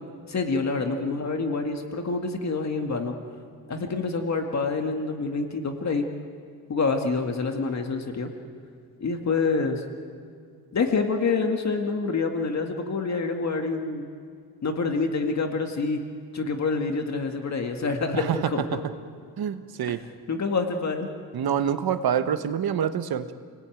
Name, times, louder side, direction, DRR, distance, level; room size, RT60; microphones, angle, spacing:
voice 1, 0.3-3.2 3.7-6.1 6.7-8.3 9.0-9.8 10.7-14.1 14.6-16.0 16.3-18.8 19.9-20.0 20.3-21.1, left 4 dB, 45° left, 4 dB, 2.0 m, -27 dB
voice 2, 18.1-18.5 19.4-20.0 21.3-23.3, right 8 dB, 75° right, 10 dB, 1.3 m, -26 dB
29.5 x 19.0 x 9.2 m, 2.3 s
wide cardioid pair, 155°, 37 cm